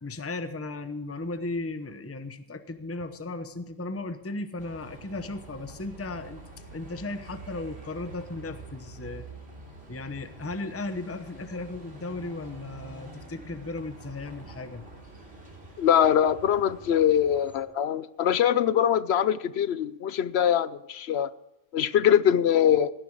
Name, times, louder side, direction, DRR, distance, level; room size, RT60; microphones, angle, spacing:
voice 1, 0.0-6.4 6.7-9.4 9.9-14.8, left 2 dB, 15° left, 10 dB, 0.7 m, -36 dB
Bus, 4.6-17.6, right 3 dB, 55° right, 3.3 m, -46 dB
voice 2, 15.8-21.3 21.7-22.9, left 9 dB, 60° left, 16 dB, 0.8 m, -23 dB
17.0 x 10.5 x 4.7 m, 0.97 s
omnidirectional pair, 1.3 m